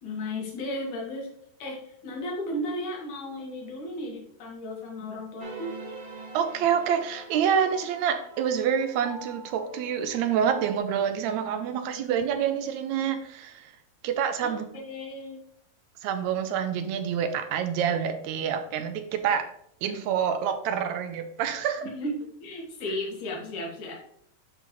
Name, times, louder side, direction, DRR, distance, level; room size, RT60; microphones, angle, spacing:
voice 1, 0.0-1.3 1.6-5.8 14.4-15.4 21.8-22.1 22.4-23.9, left 1 dB, 75° left, -1 dB, 3.0 m, -34 dB
sound 1, 5.4-10.8, right 2 dB, 55° right, 0.5 m, -44 dB
voice 2, 6.3-13.7 14.0-14.6 16.0-19.5 19.8-21.9, right 8 dB, 80° right, 8 dB, 1.7 m, -27 dB
10.5 x 3.8 x 3.1 m, 0.68 s
omnidirectional pair, 3.6 m